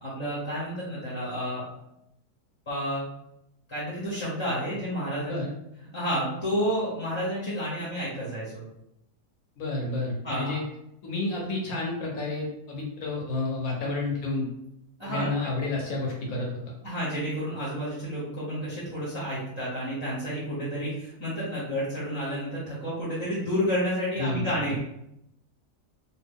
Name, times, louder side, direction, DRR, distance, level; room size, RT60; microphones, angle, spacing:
voice 1, 0.0-1.6 2.7-3.0 3.7-5.3 5.9-8.6 10.2-10.5 15.0-15.3 16.8-24.8, equal, 25° left, -9 dB, 0.7 m, -30 dB
voice 2, 9.6-10.6 11.0-14.5 15.0-16.5 24.2-24.4, left 2 dB, 65° left, -2 dB, 1.1 m, -30 dB
2.9 x 2.3 x 3.5 m, 0.82 s
omnidirectional pair, 1.8 m